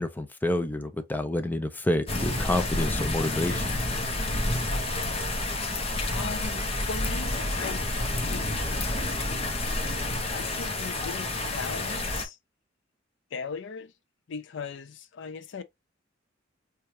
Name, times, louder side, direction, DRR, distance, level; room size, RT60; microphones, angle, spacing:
voice 1, 0.0-3.7, left 1 dB, 10° left, 0.5 m, -28 dB
sound 1, 2.1-12.2, left 2 dB, 30° left, 0.8 m, -29 dB
voice 2, 6.1-8.4 10.3-12.4 13.3-13.9 14.3-15.6, left 5 dB, 65° left, 0.5 m, -38 dB
4.6 x 2.3 x 2.7 m
head